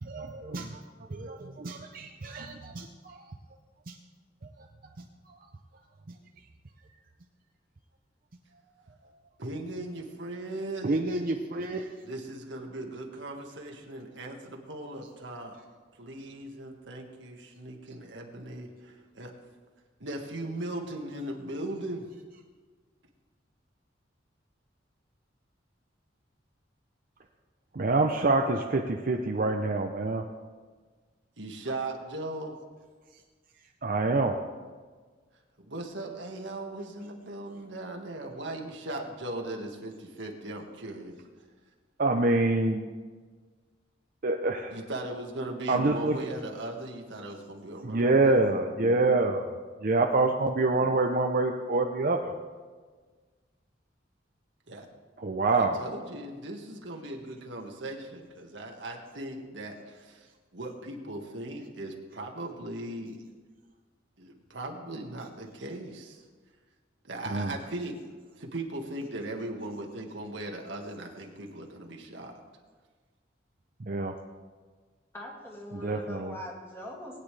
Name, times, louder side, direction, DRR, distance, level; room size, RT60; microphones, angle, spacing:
voice 1, 0.0-3.3 3.9-4.0 4.4-4.7 5.0-5.5 6.1-6.2 10.8-11.9 27.7-30.3 33.8-34.4 42.0-42.9 44.2-44.8 45.7-46.2 47.8-52.3 55.2-55.8 67.3-67.6 73.8-74.2 75.7-76.4, right 2 dB, 50° right, 3 dB, 0.7 m, -27 dB
voice 2, 9.4-10.9 12.0-15.6 16.0-19.3 20.0-22.0 31.4-32.5 35.6-41.1 44.7-48.3 54.7-54.9 55.5-63.2 64.2-66.2 67.0-68.0 68.4-72.3, right 1 dB, 70° right, 1 dB, 1.7 m, -38 dB
voice 3, 75.1-77.2, left 1 dB, 15° left, -3 dB, 2.3 m, -42 dB
20.5 x 9.5 x 3.3 m, 1.5 s
head